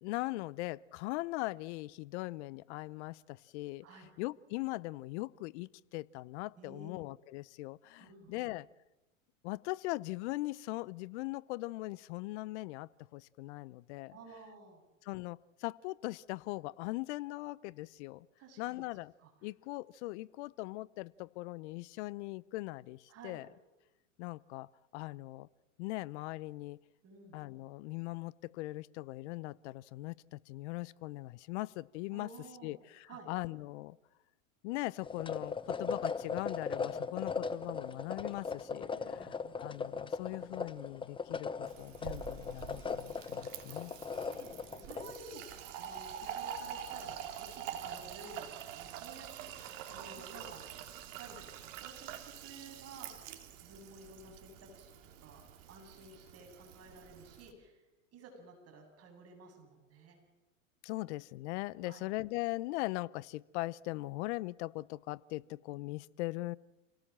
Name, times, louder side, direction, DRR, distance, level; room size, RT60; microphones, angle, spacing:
voice 1, 0.0-8.7 9.4-14.2 15.0-18.3 18.6-19.1 19.4-23.5 24.2-24.7 24.9-25.5 25.8-26.8 27.3-32.3 32.6-34.0 34.6-43.9 60.8-66.6, left 20 dB, 55° left, 22 dB, 0.8 m, -40 dB
voice 2, 6.6-6.9 8.0-8.5 14.1-14.8 18.4-18.9 19.2-19.3 23.1-23.4 27.0-27.4 32.1-32.7 33.1-33.3 38.9-39.6 43.7-43.8 44.2-50.6 50.9-54.9 55.2-55.4 55.7-57.8 58.1-60.2 61.8-62.1, right 2 dB, 35° right, 3 dB, 7.9 m, -53 dB
sound 1, 35.0-45.2, left 5 dB, 10° left, 0.9 m, -39 dB
Fill (with liquid), 41.7-57.5, right 9 dB, 65° right, 3.4 m, -46 dB
28.0 x 18.0 x 7.6 m, 1.1 s
hypercardioid pair, 105°, 40 cm